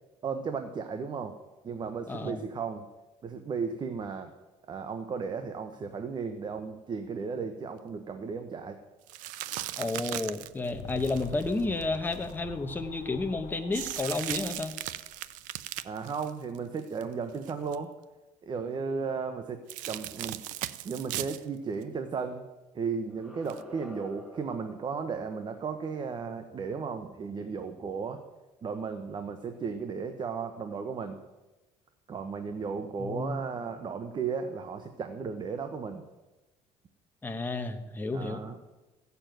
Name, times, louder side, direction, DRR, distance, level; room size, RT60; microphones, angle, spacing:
voice 1, 0.2-1.3 1.6-2.9 3.2-4.3 4.7-8.8 15.8-17.9 18.4-20.4 20.8-22.5 22.7-28.2 28.6-31.2 32.1-36.0 38.1-38.6, right 5 dB, 35° right, 7 dB, 1.0 m, -35 dB
voice 2, 2.1-2.4 9.8-14.7 33.0-33.4 37.2-38.4, left 3 dB, 15° left, 6 dB, 1.2 m, -31 dB
sound 1, 9.1-12.3 13.7-17.0 17.3-17.8 19.7-21.4 21.8-21.9 23.5-23.6, right 15 dB, 85° right, 0.6 m, -37 dB
sound 2, 10.4-15.8, left 11 dB, 65° left, 0.6 m, -46 dB
sound 3, 23.1-28.0, left 1 dB, 5° right, 1.9 m, -51 dB
15.0 x 7.0 x 9.2 m, 1.1 s
cardioid pair, 130°, 13 cm